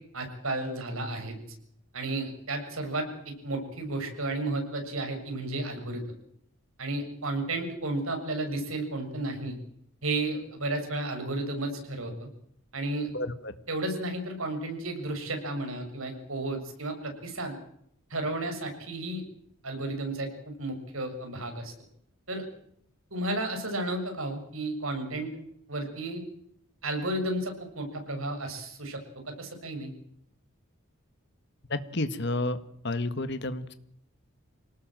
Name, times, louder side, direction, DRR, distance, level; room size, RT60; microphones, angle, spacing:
voice 1, 0.1-1.4 1.9-6.0 6.8-9.6 10.0-12.3 12.7-13.1 13.7-17.6 18.1-19.2 19.6-21.7 22.3-22.4 23.1-25.3 25.7-26.2 26.8-29.0 29.3-29.9, right 2 dB, 75° right, 4 dB, 7.2 m, -33 dB
voice 2, 13.1-13.5 31.7-32.6 32.8-33.8, left 2 dB, 50° left, 11 dB, 1.8 m, -30 dB
27.0 x 19.0 x 7.8 m, 0.71 s
head